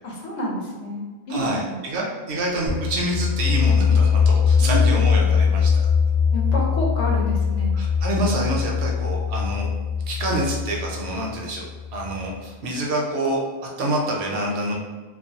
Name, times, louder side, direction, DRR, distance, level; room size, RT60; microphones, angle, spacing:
voice 1, 0.0-1.8 4.6-4.9 6.3-7.9, equal, 85° left, -2 dB, 0.9 m, -29 dB
voice 2, 1.3-5.7 7.7-9.7 10.1-13.4 13.8-14.7, right 1 dB, 70° right, -2 dB, 0.8 m, -27 dB
sound 1, 2.7-12.3, left 6 dB, 55° left, 0.5 m, -21 dB
2.4 x 2.0 x 2.6 m, 1.4 s
omnidirectional pair, 1.2 m